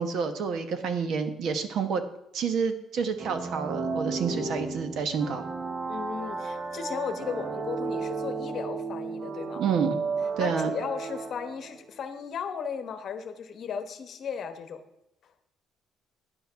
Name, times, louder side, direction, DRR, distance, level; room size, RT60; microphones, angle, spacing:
voice 1, 0.0-2.0 2.3-5.5 9.6-10.0 10.4-10.7, right 6 dB, 55° right, 9 dB, 1.2 m, -28 dB
sound 1, 3.2-11.8, right 4 dB, 30° right, 0.8 m, -34 dB
voice 2, 5.9-9.6 10.4-14.8, left 6 dB, 45° left, 9 dB, 1.1 m, -36 dB
10.0 x 8.5 x 5.7 m, 0.84 s
cardioid pair, 155°, 0 cm